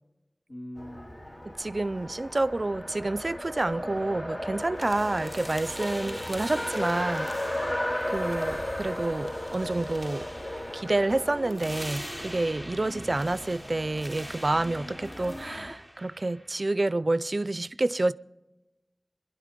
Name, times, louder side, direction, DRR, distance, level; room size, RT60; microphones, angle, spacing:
voice 1, 0.5-1.3 1.9-2.0 2.7-2.9 6.0-6.6 12.9-13.4 15.1-15.4, equal, 65° left, 2.6 m, -46 dB
Race car auto racing, 0.8-15.7, left 1 dB, 45° left, 2.1 m, -36 dB
voice 2, 1.5-7.7 8.1-10.3 10.7-18.1, right 2 dB, 65° right, 0.4 m, -29 dB
sound 1, 4.8-16.7, equal, 5° right, 0.6 m, -44 dB
sound 2, 7.7-12.7, equal, 85° left, 4.1 m, -52 dB
24.5 x 11.0 x 5.1 m
wide cardioid pair, 40°, 0 cm